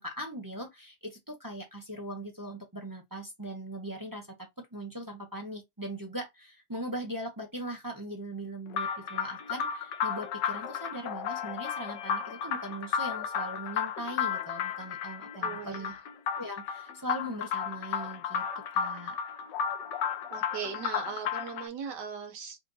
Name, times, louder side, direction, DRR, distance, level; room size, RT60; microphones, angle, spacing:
voice 1, 0.0-15.9 16.3-19.2, right 1 dB, 20° right, 0.6 m, -40 dB
sound 1, 8.7-21.7, left 7 dB, 75° left, 1.3 m, -33 dB
voice 2, 15.4-16.0 20.3-22.6, right 7 dB, 65° right, 1.6 m, -39 dB
4.2 x 2.6 x 3.8 m
omnidirectional pair, 2.0 m